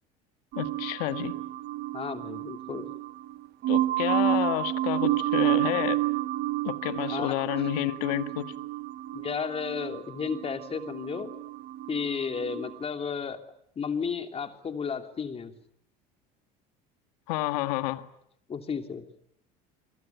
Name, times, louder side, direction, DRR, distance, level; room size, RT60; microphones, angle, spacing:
voice 1, 0.5-1.3 3.7-6.0 6.6-8.4 17.3-18.1, left 17 dB, 85° left, 1.8 m, -30 dB
sound 1, 0.5-12.8, right 14 dB, 55° right, 1.4 m, -30 dB
voice 2, 1.9-2.9 7.1-7.4 9.1-11.3 11.9-13.4 13.7-15.5 18.5-19.0, left 6 dB, 30° left, 3.2 m, -33 dB
28.5 x 22.0 x 9.4 m
supercardioid pair, 100°, 19 cm